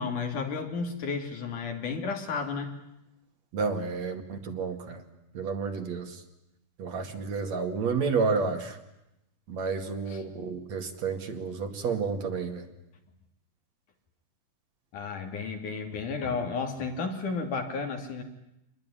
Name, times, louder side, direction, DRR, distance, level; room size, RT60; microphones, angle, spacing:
voice 1, 0.0-2.7 10.1-10.2 14.9-18.2, left 4 dB, 75° left, 4 dB, 4.5 m, -32 dB
voice 2, 3.5-5.0 5.3-6.2 6.8-8.8 9.5-12.7, right 5 dB, 60° right, 5 dB, 3.4 m, -30 dB
26.5 x 20.5 x 10.0 m, 0.88 s
omnidirectional pair, 3.6 m